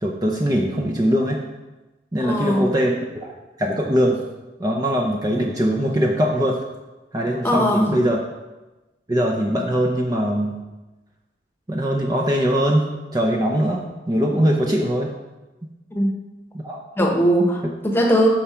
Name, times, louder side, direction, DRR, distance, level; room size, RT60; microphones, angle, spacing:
voice 1, 0.0-1.4 2.1-3.3 3.6-4.2 4.6-6.6 7.1-8.2 9.1-10.6 11.7-12.8 13.1-15.1 16.5-16.8, equal, 20° right, -1 dB, 0.6 m, -21 dB
voice 2, 2.2-2.7 7.4-7.9 15.9-16.1 17.0-18.3, equal, 15° left, 0 dB, 1.1 m, -19 dB
8.9 x 5.9 x 4.4 m, 1.1 s
head